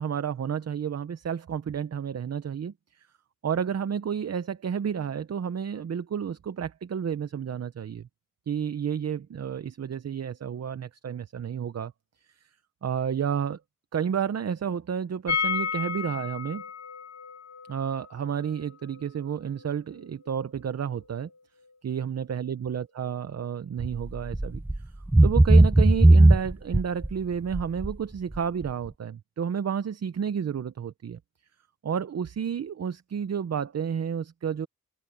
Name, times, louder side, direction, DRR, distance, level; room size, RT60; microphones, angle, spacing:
voice 1, 0.0-2.7 3.4-8.0 8.5-11.9 12.8-13.6 13.9-16.6 17.7-21.3 21.8-24.6 25.2-31.2 31.8-34.7, right 7 dB, 50° right, 0.7 m, -31 dB
sound 1, 15.3-21.0 21.3-21.4 21.7-21.8, left 6 dB, 55° left, 1.2 m, -34 dB
sound 2, 23.8-24.0 24.3-24.8 25.1-27.1 27.5-27.9 28.4-28.5, right 2 dB, 5° right, 0.4 m, -16 dB
open air
wide cardioid pair, 120°, 33 cm